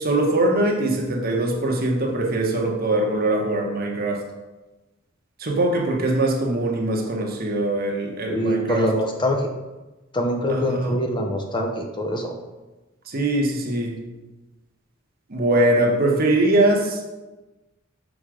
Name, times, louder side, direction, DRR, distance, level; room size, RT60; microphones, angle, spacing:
voice 1, 0.0-4.2 5.4-8.9 10.5-10.9 13.1-13.9 15.3-17.0, right 1 dB, 45° right, 1 dB, 1.1 m, -22 dB
voice 2, 8.3-9.5 10.1-12.4, equal, 25° left, 3 dB, 0.7 m, -24 dB
6.2 x 4.8 x 4.9 m, 1.1 s
head